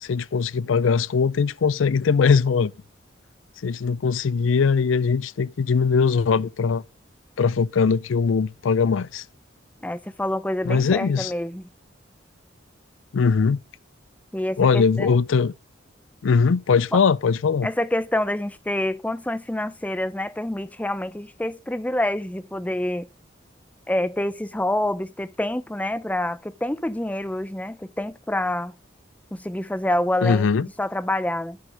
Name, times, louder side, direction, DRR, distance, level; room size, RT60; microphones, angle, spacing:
voice 1, 0.0-2.7 3.6-6.8 7.4-9.2 10.7-11.3 13.1-13.6 14.6-15.5 16.2-17.7 30.2-30.7, left 5 dB, 85° left, 0.4 m, -20 dB
voice 2, 9.8-11.6 14.3-15.1 17.6-23.1 23.9-28.7 29.3-31.6, left 1 dB, 10° left, 0.5 m, -27 dB
10.5 x 6.7 x 5.4 m
head